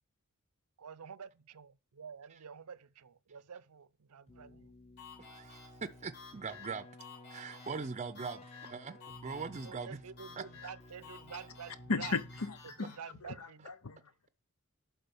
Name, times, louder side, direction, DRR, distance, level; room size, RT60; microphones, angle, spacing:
voice 1, 0.8-4.7 9.6-12.1 12.8-13.7, right 6 dB, 85° right, 0.6 m, -49 dB
Keyboard (musical), 4.3-13.0, left 1 dB, 30° left, 0.9 m, -54 dB
sound 1, 5.0-13.0, left 5 dB, 50° left, 4.5 m, -54 dB
voice 2, 5.3-6.8 7.3-10.0 10.4-10.5, right 5 dB, 30° right, 0.5 m, -41 dB
voice 3, 11.9-14.1, left 4 dB, 80° left, 0.8 m, -37 dB
11.0 x 3.8 x 7.0 m
head